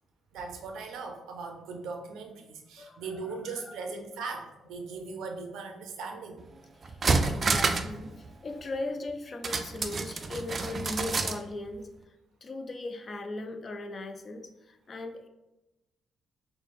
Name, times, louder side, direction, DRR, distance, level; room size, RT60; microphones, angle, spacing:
voice 1, 0.3-6.4, right 4 dB, 85° right, 4 dB, 0.6 m, -39 dB
voice 2, 2.8-3.9 6.8-11.9 12.4-15.3, left 2 dB, 40° left, 6 dB, 0.4 m, -38 dB
sound 1, 6.4-6.5 6.8-8.0 8.2-8.3 9.4-11.4 11.7-11.8, right 4 dB, 40° right, 0.4 m, -28 dB
3.2 x 2.1 x 4.2 m, 0.96 s
cardioid pair, 90°, 0 cm